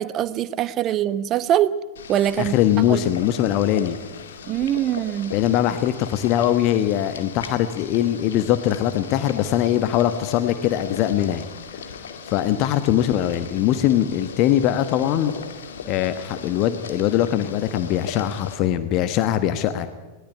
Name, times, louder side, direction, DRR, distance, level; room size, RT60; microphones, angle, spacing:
voice 1, 0.0-1.8 2.1-2.6 2.9-3.0 4.5-5.4, right 11 dB, 35° right, 1.0 m, -23 dB
Boiling, 2.0-18.6, left 5 dB, 65° left, 2.3 m, -38 dB
voice 2, 2.4-4.0 5.3-11.5 12.3-15.3 15.9-19.9, left 11 dB, 40° left, 1.2 m, -21 dB
20.5 x 18.0 x 9.7 m
figure-of-eight pair, 90°, 0 cm